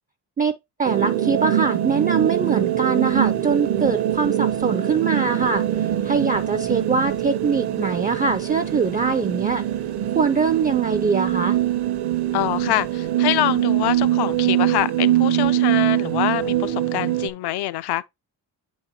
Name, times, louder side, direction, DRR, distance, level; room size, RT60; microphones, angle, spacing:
voice 1, 0.4-5.6 6.0-9.6 10.2-11.6, right 5 dB, 20° right, 0.3 m, -22 dB
sound 1, 0.8-17.3, right 12 dB, 65° right, 0.7 m, -23 dB
voice 2, 12.3-18.0, left 14 dB, 70° left, 0.5 m, -25 dB
8.7 x 4.1 x 2.8 m
cardioid pair, 130°, 41 cm